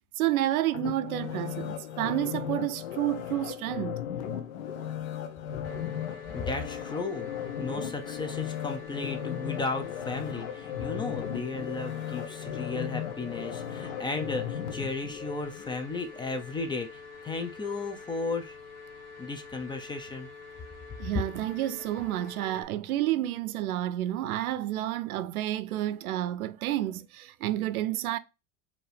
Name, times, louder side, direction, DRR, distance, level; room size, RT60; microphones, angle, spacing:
voice 1, 0.2-4.0 21.0-28.2, right 14 dB, 90° right, 0.5 m, -30 dB
sound 1, 0.7-15.8 16.2-16.3, left 9 dB, 70° left, 0.9 m, -36 dB
sound 2, 5.6-22.6, left 4 dB, 35° left, 1.2 m, -47 dB
voice 2, 6.3-7.3 7.6-16.9 17.2-18.5 19.2-20.3, left 3 dB, 10° left, 0.5 m, -34 dB
4.4 x 2.7 x 3.3 m
supercardioid pair, 115°, 42 cm